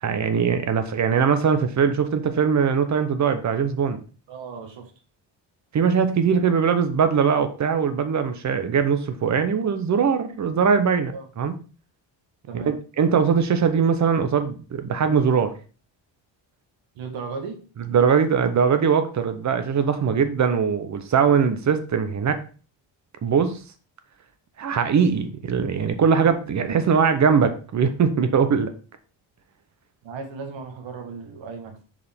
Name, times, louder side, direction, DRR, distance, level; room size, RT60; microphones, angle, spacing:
voice 1, 0.0-4.0 5.7-11.5 12.5-15.5 17.9-22.4 23.2-23.6 24.6-28.7, right 6 dB, 40° right, 10 dB, 0.8 m, -21 dB
voice 2, 4.3-4.9 11.1-11.3 12.5-12.7 17.0-17.6 30.0-31.8, right 5 dB, 80° right, 4 dB, 1.8 m, -35 dB
6.7 x 5.1 x 3.6 m, 0.37 s
cardioid pair, 160°, 45 cm